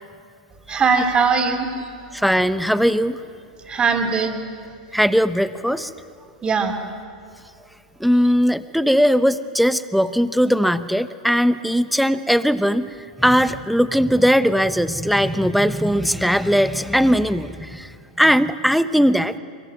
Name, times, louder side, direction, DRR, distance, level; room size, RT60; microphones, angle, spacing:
voice 1, 0.7-2.2 3.6-4.4 6.4-6.8 8.0-8.1, right 5 dB, 20° right, 4 dB, 3.6 m, -21 dB
voice 2, 2.1-3.2 4.9-5.9 8.0-12.9 13.2-17.9 18.2-19.4, equal, ahead, 13 dB, 1.0 m, -19 dB
25.0 x 23.0 x 9.4 m, 2.3 s
figure-of-eight pair, 95°, 4 cm